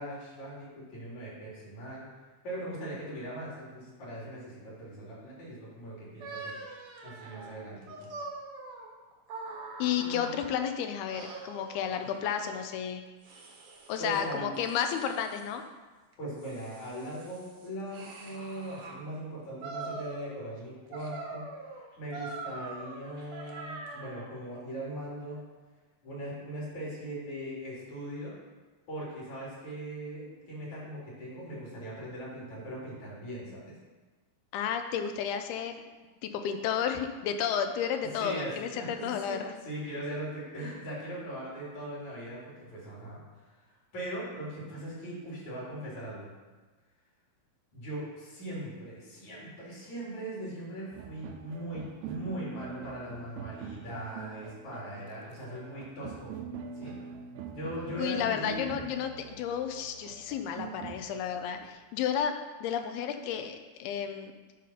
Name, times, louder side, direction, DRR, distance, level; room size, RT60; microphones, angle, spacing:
voice 1, 0.0-2.1 2.4-6.6 7.0-8.1 10.0-10.3 12.0-12.1 14.0-14.5 16.2-21.4 22.0-25.4 26.0-28.3 28.9-33.8 38.1-43.5 43.9-46.3 47.7-56.4 56.8-57.0 57.5-58.6, right 1 dB, 50° left, -6 dB, 4.0 m, -40 dB
sound 1, 6.2-10.7 11.1-12.6 13.2-14.2 14.5-15.6 16.1-19.0 19.6-20.6 20.9-24.4, right 3 dB, 65° right, 1.5 m, -44 dB
voice 2, 9.8-13.0 13.9-15.6 34.5-35.8 36.2-39.5 58.0-62.3 62.6-64.3, left 8 dB, 80° left, 7 dB, 2.6 m, -32 dB
sound 2, 50.9-61.7, right 7 dB, 90° right, 2.6 m, -44 dB
11.5 x 4.2 x 5.6 m, 1.3 s
omnidirectional pair, 4.5 m